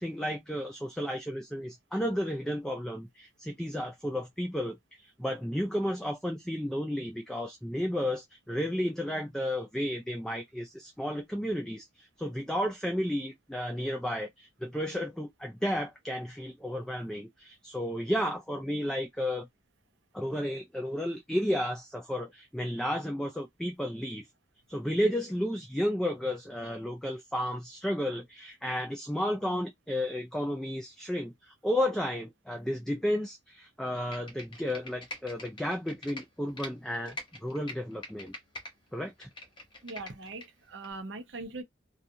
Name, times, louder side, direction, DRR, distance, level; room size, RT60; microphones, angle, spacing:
voice 1, 0.0-19.5 20.1-24.3 24.7-38.3 38.9-39.3, equal, 5° left, 0.3 m, -32 dB
Computer keyboard, 34.0-36.7 37.1-38.7 39.1-40.5 40.8-40.9, left 1 dB, 25° left, 0.8 m, -43 dB
voice 2, 39.8-41.6, right 3 dB, 85° right, 0.7 m, -41 dB
2.4 x 2.3 x 2.7 m
head